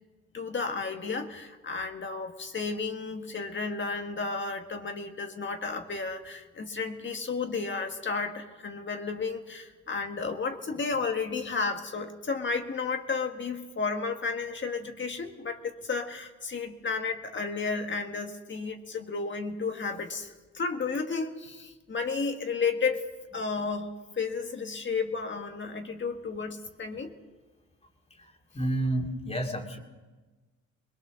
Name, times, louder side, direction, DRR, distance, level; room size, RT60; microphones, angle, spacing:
voice 1, 0.3-23.0 23.3-27.2, left 4 dB, 40° left, 5 dB, 1.6 m, -32 dB
voice 2, 28.2-29.8, right 1 dB, 20° left, 4 dB, 2.6 m, -31 dB
21.5 x 21.0 x 6.3 m, 1.3 s
cardioid pair, 90°, 30 cm